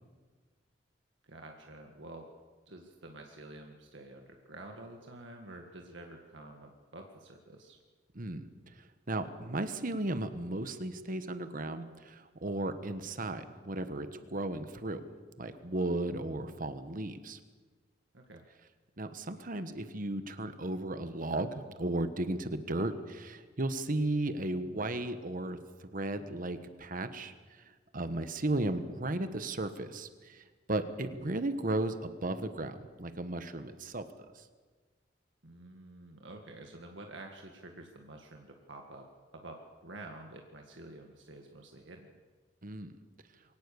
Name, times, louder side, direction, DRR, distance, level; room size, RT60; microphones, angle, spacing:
voice 1, 1.2-2.3 2.7-7.8 18.1-18.4 35.4-39.1 39.3-42.2, right 2 dB, 80° right, 2 dB, 1.9 m, -49 dB
voice 2, 8.1-8.5 9.1-15.0 15.4-17.4 19.0-27.3 27.6-34.0 34.4-34.5 42.6-42.9, right 2 dB, 45° right, 10 dB, 1.3 m, -35 dB
23.5 x 18.0 x 7.0 m, 1.4 s
head